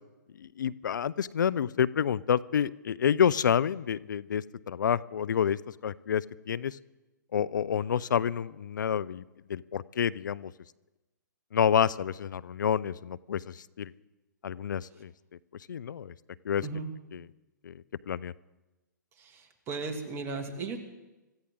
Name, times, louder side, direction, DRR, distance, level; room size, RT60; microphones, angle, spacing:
voice 1, 0.4-6.8 7.3-10.5 11.5-13.9 14.4-15.1 15.7-16.1 16.4-16.6 17.1-17.2 17.6-17.7 18.1-18.3, left 8 dB, 75° left, 21 dB, 0.5 m, -28 dB
voice 2, 19.2-20.8, right 4 dB, 25° right, 4 dB, 2.2 m, -36 dB
25.0 x 14.5 x 3.7 m, 1.1 s
hypercardioid pair, 130°, 10 cm